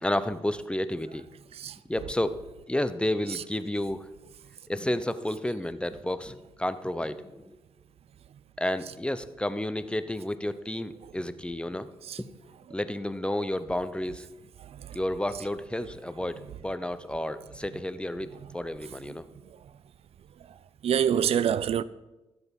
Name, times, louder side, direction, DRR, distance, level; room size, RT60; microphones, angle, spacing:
voice 1, 0.0-1.2 1.9-2.4 2.7-4.1 4.7-7.6 8.6-11.9 12.2-12.3 12.7-14.3 14.9-19.2, left 1 dB, 10° left, 0.8 m, -31 dB
voice 2, 14.6-15.0 19.1-19.2 20.8-21.8, right 9 dB, 65° right, 0.4 m, -27 dB
14.0 x 7.9 x 5.4 m
cardioid pair, 60°, 11 cm